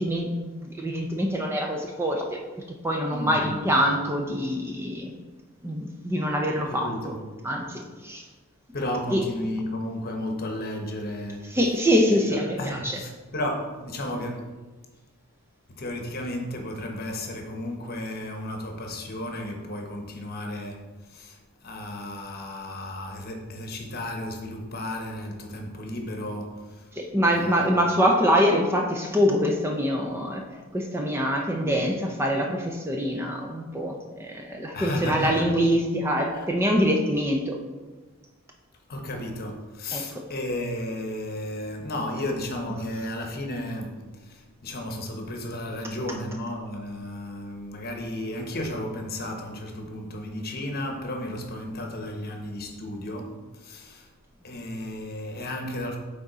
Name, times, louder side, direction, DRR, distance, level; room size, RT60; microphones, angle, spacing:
voice 1, 0.0-2.4 2.8-5.1 5.6-7.1 7.4-8.2 9.1-9.2 11.5-13.0 27.0-30.4 30.7-37.6 39.9-40.0, equal, 10° right, 1 dB, 0.5 m, -24 dB
voice 2, 3.1-3.7 6.6-7.3 8.7-11.6 12.1-14.5 15.7-26.9 27.3-27.7 34.7-35.5 36.3-36.5 38.9-54.1 54.4-56.0, left 1 dB, 45° left, 2 dB, 1.0 m, -33 dB
8.7 x 3.7 x 4.0 m, 1.3 s
head